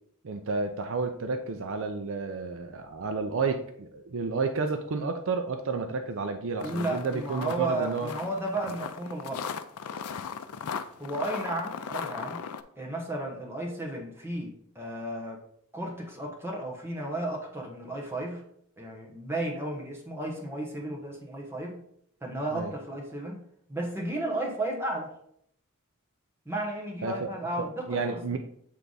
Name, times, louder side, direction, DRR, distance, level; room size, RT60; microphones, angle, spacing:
voice 1, 0.2-8.1 8.7-8.8 22.5-22.7 27.0-27.3 27.6-28.4, right 4 dB, 60° right, 6 dB, 0.5 m, -31 dB
sound 1, 6.6-12.6, left 6 dB, 90° left, 0.4 m, -37 dB
voice 2, 6.6-9.5 11.0-12.4 12.8-15.4 15.7-18.4 18.8-21.8 22.2-23.4 23.7-25.1 26.4-28.4, right 1 dB, 10° right, -1 dB, 1.1 m, -34 dB
7.7 x 3.4 x 4.0 m, 0.69 s
head